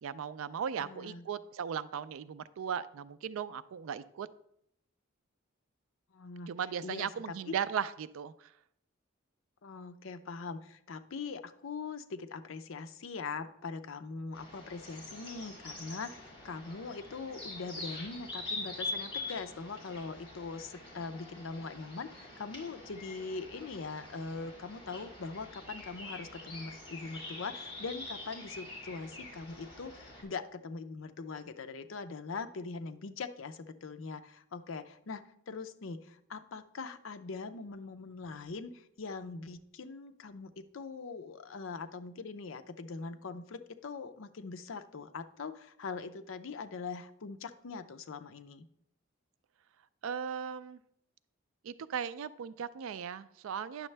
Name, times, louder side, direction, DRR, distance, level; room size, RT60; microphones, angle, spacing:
voice 1, 0.0-4.3 6.5-8.5 50.0-50.8 51.6-53.9, right 7 dB, 80° right, 16 dB, 0.3 m, -37 dB
voice 2, 0.8-1.3 6.1-6.5 6.8-7.5 9.6-48.7, left 4 dB, 70° left, 10 dB, 0.5 m, -42 dB
sound 1, 14.3-30.2, left 2 dB, 25° left, 2.1 m, -45 dB
9.5 x 6.3 x 3.3 m, 0.74 s
head